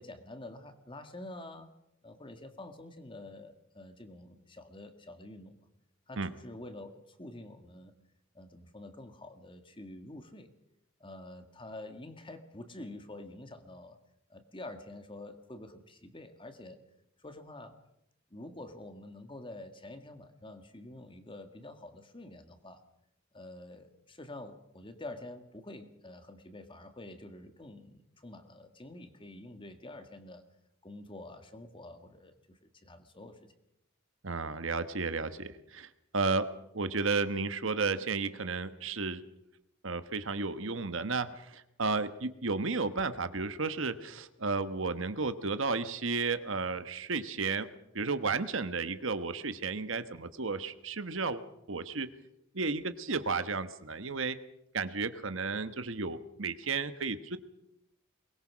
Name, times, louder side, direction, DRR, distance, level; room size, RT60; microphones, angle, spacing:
voice 1, 0.0-1.7 2.0-5.6 6.1-7.9 8.3-10.5 11.0-14.0 14.3-16.8 17.2-17.7 18.3-22.8 23.3-30.4 30.8-33.5, left 1 dB, 25° left, 7 dB, 1.9 m, -47 dB
voice 2, 34.2-36.5 36.7-39.2 39.8-47.7 47.9-52.1 52.5-54.4 54.7-57.4, right 4 dB, 70° right, 11 dB, 1.2 m, -33 dB
22.5 x 21.0 x 6.3 m, 0.82 s
head